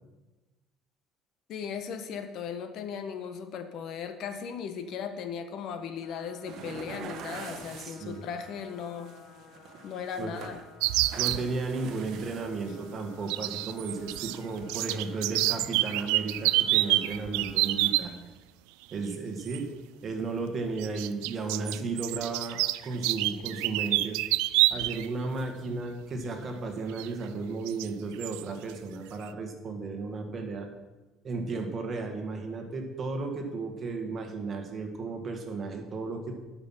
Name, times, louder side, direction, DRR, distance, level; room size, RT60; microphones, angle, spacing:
voice 1, 1.5-9.1 9.8-10.6, left 7 dB, 60° left, 8 dB, 1.1 m, -37 dB
sound 1, 6.0-17.9, left 5 dB, 85° left, 1.5 m, -54 dB
sound 2, 6.5-8.2 8.6-10.7 11.0-12.9 13.6-14.0 14.5-15.0, right 6 dB, 60° right, 1.0 m, -45 dB
voice 2, 7.8-8.2 10.2-10.3 11.2-18.1 18.9-19.7 20.0-24.2 24.7-30.7 31.2-36.4, right 3 dB, 35° right, 4 dB, 1.7 m, -34 dB
sound 3, 10.8-11.4 13.3-14.4 14.6-18.1 19.5-19.6 20.8-25.1 25.4-25.5 27.0-27.1 27.7-27.9 28.2-28.4, right 18 dB, 90° right, 0.3 m, -27 dB
12.0 x 5.9 x 5.6 m, 1.1 s
cardioid pair, 115°, 0 cm